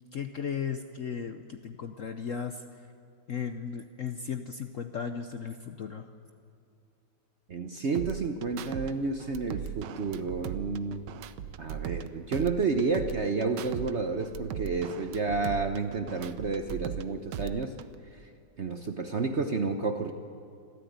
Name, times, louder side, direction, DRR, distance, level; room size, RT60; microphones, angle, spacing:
voice 1, 0.1-2.6 3.3-6.1, left 7 dB, 60° left, 8 dB, 0.9 m, -36 dB
voice 2, 7.5-11.0 11.6-17.7 18.1-18.3 18.6-20.1, right 4 dB, 50° right, 7 dB, 0.9 m, -30 dB
sound 1, 7.9-8.9 9.2-12.1 12.3-13.9 14.2-17.0 17.3-17.9, right 10 dB, 70° right, 1.3 m, -38 dB
25.5 x 14.0 x 9.4 m, 2.5 s
omnidirectional pair, 2.1 m